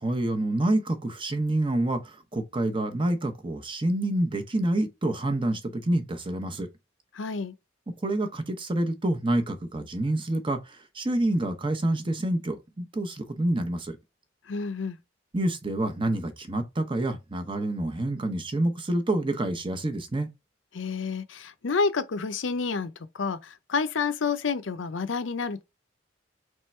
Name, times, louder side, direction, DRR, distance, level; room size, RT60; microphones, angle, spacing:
voice 1, 0.0-6.7 7.9-14.0 15.3-20.3, right 1 dB, 25° right, 0.8 m, -27 dB
voice 2, 7.1-7.5 14.5-15.0 20.7-22.9 23.2-25.6, left 4 dB, 80° left, 0.6 m, -29 dB
3.6 x 3.3 x 4.3 m
head